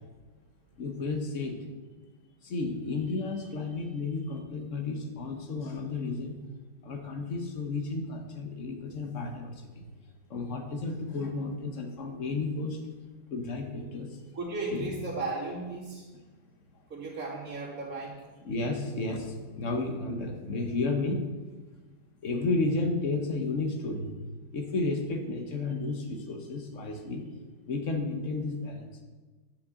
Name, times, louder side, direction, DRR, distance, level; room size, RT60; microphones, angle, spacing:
voice 1, 0.8-1.6 2.4-6.4 6.8-9.9 10.3-12.8 13.3-14.1 14.7-14.9 18.4-21.3 22.2-24.1 24.5-27.3 27.7-28.9, left 3 dB, 50° left, 4 dB, 1.0 m, -32 dB
voice 2, 14.3-16.1 16.9-18.2, right 3 dB, 40° right, -5 dB, 2.7 m, -35 dB
9.8 x 9.6 x 3.7 m, 1.3 s
omnidirectional pair, 2.3 m